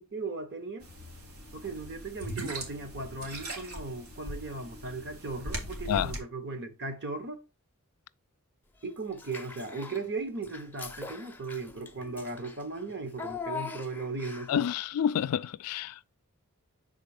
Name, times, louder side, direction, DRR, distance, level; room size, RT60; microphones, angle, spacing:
voice 1, 0.1-0.9 1.5-7.4 8.8-14.7, right 3 dB, 55° right, 1.2 m, -37 dB
sound 1, 0.8-6.2, right 1 dB, 85° right, 1.9 m, -40 dB
Child speech kid speaking / Bathtub (filling or washing), 9.1-10.1 10.4-14.7, left 4 dB, 10° left, 0.6 m, -42 dB
voice 2, 14.5-16.1, left 9 dB, 85° left, 0.3 m, -29 dB
6.2 x 4.2 x 4.8 m
head